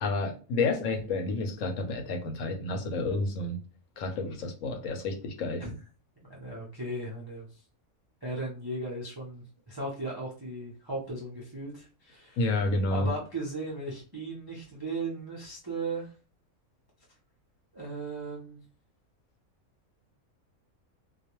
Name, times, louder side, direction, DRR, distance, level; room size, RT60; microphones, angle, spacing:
voice 1, 0.0-3.6 4.0-5.6 12.4-13.1, left 2 dB, 70° left, 3 dB, 0.9 m, -30 dB
voice 2, 6.2-7.6 8.2-12.4 12.9-16.1 17.7-18.6, right 2 dB, 40° right, -4 dB, 0.3 m, -37 dB
2.3 x 2.1 x 2.9 m, 0.37 s
omnidirectional pair, 1.5 m